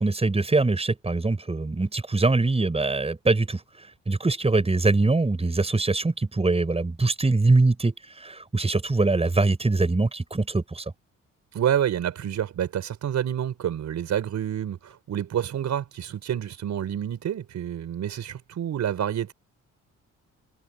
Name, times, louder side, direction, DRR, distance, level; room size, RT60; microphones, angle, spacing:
voice 1, 0.0-3.6 4.1-10.8, right 3 dB, 20° right, 6.5 m, -23 dB
voice 2, 11.5-19.3, right 10 dB, 65° right, 4.6 m, -28 dB
cardioid pair, 90°, 30 cm